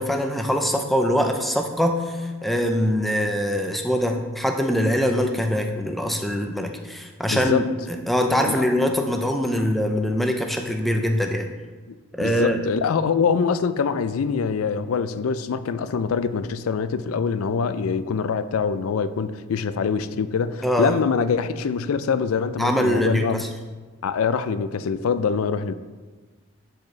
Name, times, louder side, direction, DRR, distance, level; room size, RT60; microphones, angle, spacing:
voice 1, 0.0-11.5 12.1-12.6 20.6-20.9 22.6-23.5, equal, ahead, 0.5 m, -23 dB
voice 2, 7.3-7.7 8.5-8.6 11.9-23.4 24.0-25.7, left 6 dB, 80° left, 0.4 m, -24 dB
11.5 x 4.7 x 3.2 m
head